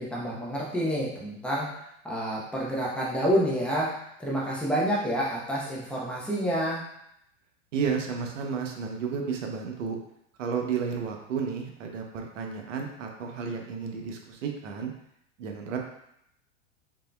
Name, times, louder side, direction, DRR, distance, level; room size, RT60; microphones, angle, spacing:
voice 1, 0.0-6.8, equal, 5° left, -6 dB, 0.8 m, -28 dB
voice 2, 7.7-10.0 10.4-14.9 15.4-15.8, right 6 dB, 85° right, 2 dB, 0.8 m, -32 dB
4.1 x 3.7 x 2.2 m, 0.77 s
hypercardioid pair, 125°, 37 cm